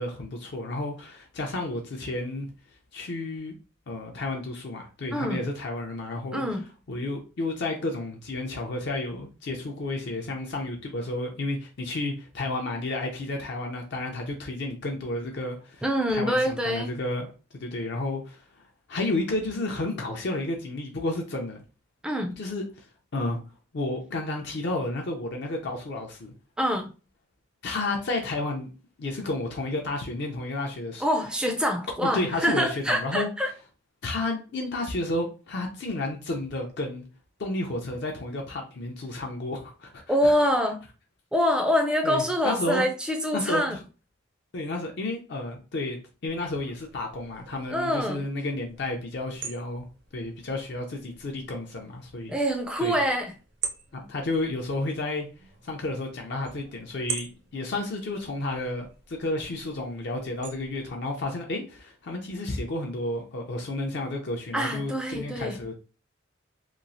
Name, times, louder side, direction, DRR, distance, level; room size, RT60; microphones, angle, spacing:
voice 1, 0.0-2.5 2.9-3.5 3.9-6.4 6.9-15.8 16.1-21.6 22.4-23.4 23.7-26.3 27.6-28.7 29.0-31.0 32.0-33.3 34.0-37.1 37.4-40.3 42.0-42.8 43.3-43.8 44.5-46.0 46.2-49.9 50.1-52.3 52.8-53.0 53.9-55.3 55.6-65.8, left 2 dB, 55° left, 0.5 m, -31 dB
voice 2, 5.1-5.4 6.3-6.6 15.8-17.0 22.0-22.4 26.6-26.9 31.0-33.5 40.1-40.8 41.3-43.8 47.7-48.3 52.3-53.3 64.5-65.6, equal, 5° right, 0.4 m, -25 dB
sound 1, 46.3-60.9, right 6 dB, 50° right, 0.5 m, -43 dB
3.0 x 2.3 x 2.6 m
head